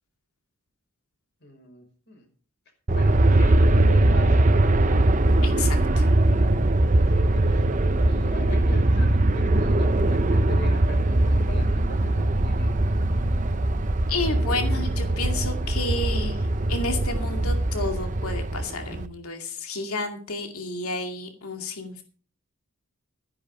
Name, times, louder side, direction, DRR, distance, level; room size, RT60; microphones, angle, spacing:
voice 1, 1.4-2.3 2.9-5.2 7.1-12.8, left 1 dB, 50° left, 4 dB, 5.2 m, -41 dB
Aircraft, 2.9-19.1, right 1 dB, 35° right, 0.7 m, -21 dB
voice 2, 5.4-6.1 14.1-16.4 16.7-22.0, left 3 dB, 80° left, 5 dB, 2.3 m, -31 dB
13.0 x 10.5 x 5.4 m, 0.41 s
head